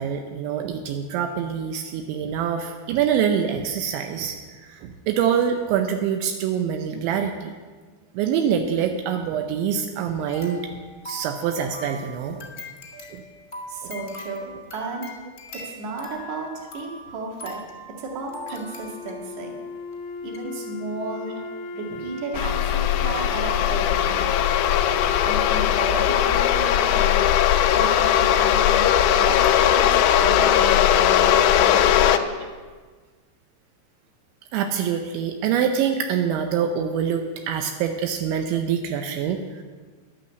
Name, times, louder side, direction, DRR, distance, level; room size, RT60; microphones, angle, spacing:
voice 1, 0.0-4.4 4.7-7.5 8.1-10.6 11.1-12.5 13.1-13.2 13.8-13.9 21.9-22.0 29.6-29.7 34.5-39.6, right 8 dB, 85° right, 4 dB, 3.1 m, -25 dB
sound 1, 10.3-19.4 19.9-20.0 20.3-20.5, left 1 dB, 20° left, 1.2 m, -41 dB
voice 2, 13.7-15.1 15.6-16.5 16.7-17.6 18.0-19.5 20.2-21.3 21.7-24.3 25.2-29.4 29.7-32.3, right 3 dB, 50° right, 0 dB, 2.7 m, -34 dB
Wind instrument woodwind instrument, 18.2-27.3, left 2 dB, 70° left, 1.9 m, -37 dB
sound 2, 22.3-32.2, left 10 dB, 90° left, 2.2 m, -19 dB
11.5 x 8.9 x 7.9 m, 1.4 s
omnidirectional pair, 5.3 m